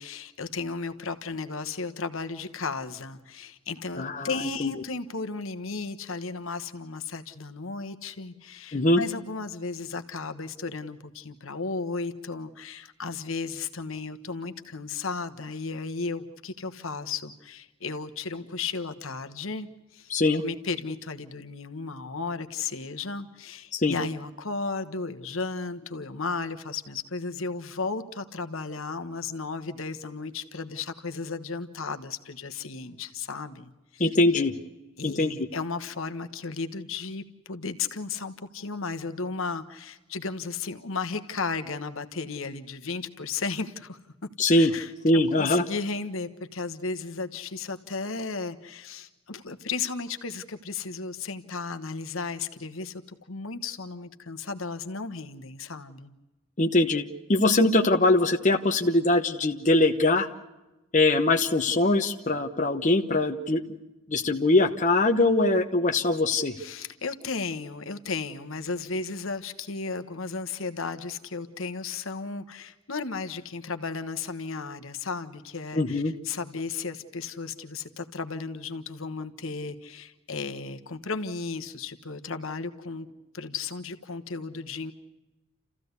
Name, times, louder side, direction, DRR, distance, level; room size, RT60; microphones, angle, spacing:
voice 1, 0.0-34.1 35.0-44.0 44.5-44.9 45.4-53.0 53.3-56.1 66.6-83.1 83.3-84.9, left 4 dB, 65° left, 9 dB, 1.3 m, -34 dB
voice 2, 4.0-4.3 4.6-4.7 8.7-9.0 20.1-20.4 23.7-23.9 34.0-34.5 35.0-35.5 44.4-44.7 45.0-45.6 56.6-60.3 60.9-63.6 64.1-66.5 75.7-76.1, left 2 dB, 35° left, 4 dB, 1.0 m, -22 dB
29.0 x 15.0 x 8.2 m, 1.1 s
head